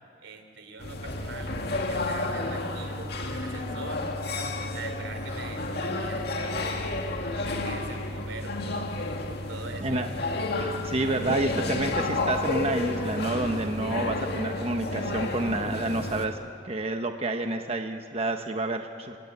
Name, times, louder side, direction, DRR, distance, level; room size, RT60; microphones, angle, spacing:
voice 1, 0.2-4.0 4.7-7.0 7.3-8.9 9.5-10.0, right 3 dB, 85° right, 7 dB, 3.0 m, -42 dB
sound 1, 0.8-16.3, left 2 dB, 60° left, 2.1 m, -31 dB
voice 2, 10.6-16.4 16.6-19.2, right 2 dB, 35° right, 5 dB, 1.0 m, -29 dB
26.5 x 18.0 x 9.5 m, 2.4 s
head